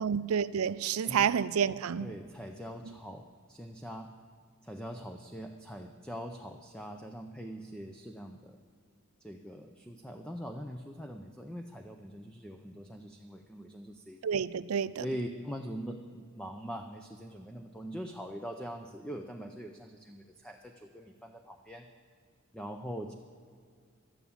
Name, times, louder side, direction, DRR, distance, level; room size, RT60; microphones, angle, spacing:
voice 1, 0.0-2.1 14.2-15.1, right 7 dB, 85° right, 17 dB, 0.4 m, -29 dB
voice 2, 2.0-4.1 4.6-8.6 9.2-14.2 15.0-21.9 22.5-23.1, equal, 5° left, 5 dB, 0.5 m, -42 dB
12.5 x 9.0 x 8.6 m, 2.1 s
head